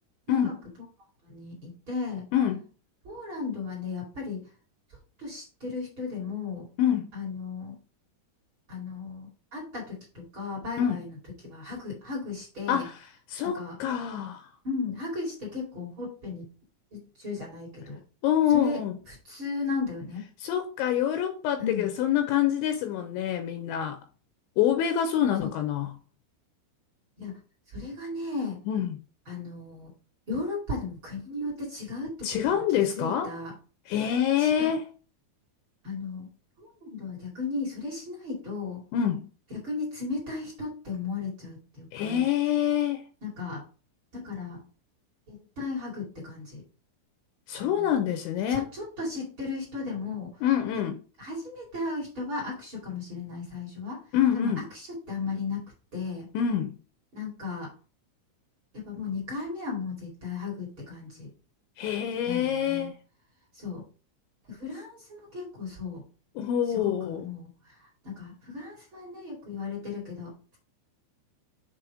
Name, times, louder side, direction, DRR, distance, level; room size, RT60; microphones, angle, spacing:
voice 1, 0.3-0.6 1.2-2.3 3.0-4.5 5.2-6.7 7.1-7.7 8.7-11.2 11.4-12.9 13.4-13.8 14.6-16.5 16.9-18.0 18.5-18.8 19.1-20.3 21.6-21.9 25.4-25.5 27.2-27.4 27.7-28.6 29.3-29.9 30.3-32.6 32.9-33.5 34.4-34.7 35.8-36.3 36.6-38.8 39.5-42.3 43.2-43.6 44.1-44.6 45.3-46.6 47.6-48.1 48.5-50.7 51.2-54.0 54.3-56.3 57.1-57.7 58.7-61.3 62.2-62.9 63.5-63.8 64.5-66.0 66.7-67.5 68.0-70.6, left 4 dB, 35° right, 2.5 m, -35 dB
voice 2, 6.8-7.1 10.8-11.0 12.7-13.0 13.3-14.5 18.2-18.9 20.4-24.0 24.6-25.9 28.7-29.0 32.2-33.3 33.9-34.9 38.9-39.3 41.9-43.0 47.5-48.7 50.4-51.0 54.1-54.6 56.3-56.8 61.8-63.0 66.4-67.3, left 10 dB, 80° left, 2.9 m, -26 dB
7.5 x 4.1 x 4.9 m
omnidirectional pair, 5.9 m